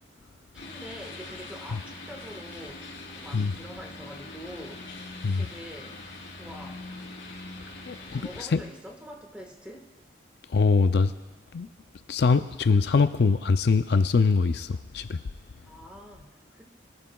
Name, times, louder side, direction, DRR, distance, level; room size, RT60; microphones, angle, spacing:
sound 1, 0.5-8.4, left 2 dB, 75° left, 3.6 m, -42 dB
voice 1, 0.5-4.9 5.4-6.0 6.3-6.9 8.0-9.9 15.7-16.6, equal, 5° right, 2 dB, 1.4 m, -45 dB
voice 2, 7.9-8.6 10.5-11.1 11.5-11.7 12.1-15.2, left 4 dB, 55° left, 10 dB, 0.4 m, -23 dB
23.0 x 14.5 x 2.3 m, 1.3 s
head